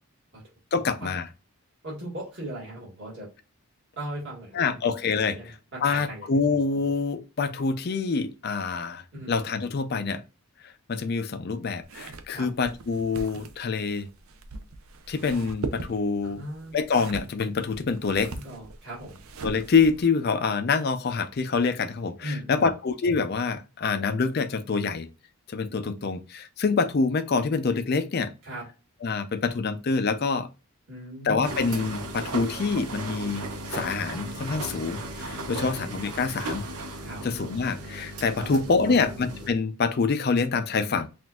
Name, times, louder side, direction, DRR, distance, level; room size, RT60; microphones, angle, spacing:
voice 1, 0.7-1.3 4.5-10.2 10.6-14.1 15.1-16.4 16.7-18.3 19.4-25.1 25.5-28.3 29.0-30.5 31.2-33.5 33.7-36.7 37.2-41.1, left 4 dB, 45° left, 0.4 m, -26 dB
voice 2, 1.8-3.3 4.0-4.8 5.3-6.3 9.1-9.4 12.3-12.5 16.2-16.8 18.3-19.2 22.2-22.7 28.4-28.7 30.9-31.4 35.3-35.7 37.0-37.2 38.4-38.6 38.9-39.0, right 1 dB, 50° right, 1.9 m, -38 dB
sound 1, 11.8-20.1, right 3 dB, 70° right, 0.6 m, -40 dB
sound 2, 31.4-39.5, right 1 dB, 85° right, 1.0 m, -36 dB
5.9 x 2.5 x 2.3 m
head